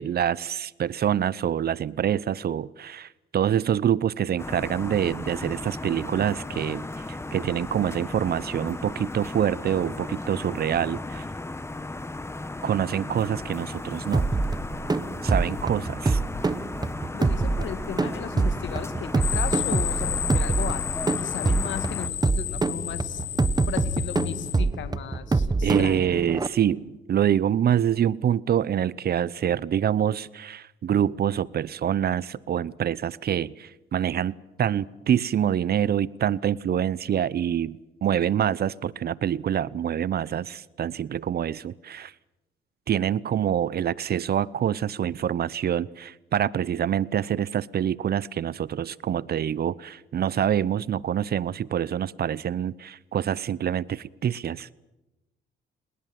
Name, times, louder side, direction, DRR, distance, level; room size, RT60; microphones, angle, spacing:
voice 1, 0.0-6.9 7.3-11.2 12.6-14.4 15.2-16.2 25.6-42.1 42.9-54.7, right 9 dB, 50° right, 21 dB, 0.8 m, -26 dB
sound 1, 4.4-22.1, left 2 dB, 15° left, 1.3 m, -36 dB
sound 2, 14.1-26.5, right 3 dB, 20° right, 1.1 m, -26 dB
voice 2, 17.1-23.2 23.7-26.2, left 9 dB, 70° left, 12 dB, 1.8 m, -36 dB
sound 3, 19.2-24.6, left 12 dB, 90° left, 1.4 m, -31 dB
29.5 x 20.0 x 7.7 m, 1.0 s
cardioid pair, 90°, 20 cm